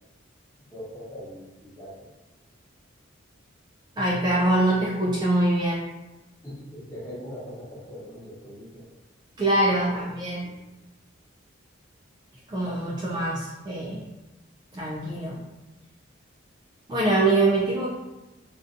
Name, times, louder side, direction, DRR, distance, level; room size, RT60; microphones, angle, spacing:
voice 1, 0.7-2.0 6.4-8.9 9.9-10.6, equal, 15° left, -8 dB, 0.8 m, -41 dB
voice 2, 4.0-5.9 9.4-10.5 12.5-14.0 14.7-15.4 16.9-17.9, right 2 dB, 20° right, -6 dB, 0.3 m, -24 dB
2.6 x 2.2 x 2.5 m, 1.0 s
head